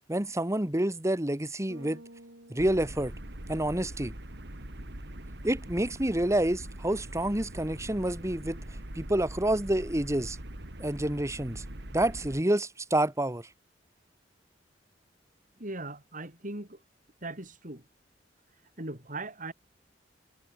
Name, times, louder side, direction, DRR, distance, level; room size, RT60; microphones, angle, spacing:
voice 1, 0.1-2.0 2.5-3.1 3.5-4.1 5.4-8.6 9.0-10.4 10.8-11.6 11.9-13.5, right 1 dB, 15° right, 1.8 m, -28 dB
Bass guitar, 1.7-4.0, right 1 dB, 85° right, 6.8 m, -52 dB
sound 1, 2.6-12.4, right 1 dB, 65° right, 3.1 m, -42 dB
voice 2, 15.6-16.8 17.2-17.8 18.8-19.5, right 2 dB, 45° right, 5.9 m, -39 dB
head